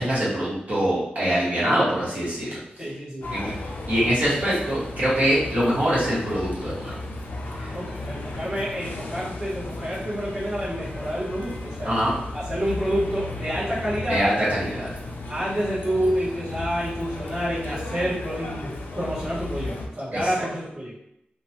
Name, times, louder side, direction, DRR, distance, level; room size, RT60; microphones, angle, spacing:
voice 1, 0.0-2.6 3.3-3.5 3.9-6.9 7.6-7.7 11.8-12.1 14.1-14.9 20.1-20.4, equal, 50° right, -9 dB, 1.3 m, -24 dB
voice 2, 2.8-3.6 7.7-12.0 12.3-14.2 15.3-21.0, equal, 15° right, -10 dB, 1.2 m, -28 dB
sound 1, 3.2-19.9, left 2 dB, 65° left, 0.4 m, -35 dB
2.9 x 2.2 x 2.8 m, 0.78 s
wide cardioid pair, 120°, 3 cm